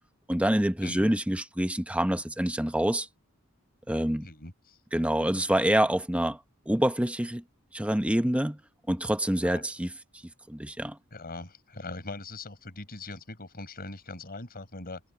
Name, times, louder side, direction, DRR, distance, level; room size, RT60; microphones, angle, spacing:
voice 1, 0.3-3.1 3.9-4.3 4.9-6.4 6.7-7.4 7.7-8.6 8.9-9.9 10.5-11.0, right 1 dB, 5° right, 1.0 m, -26 dB
voice 2, 0.8-1.2 4.2-4.8 9.4-9.6 11.1-15.0, left 2 dB, 45° left, 4.9 m, -41 dB
head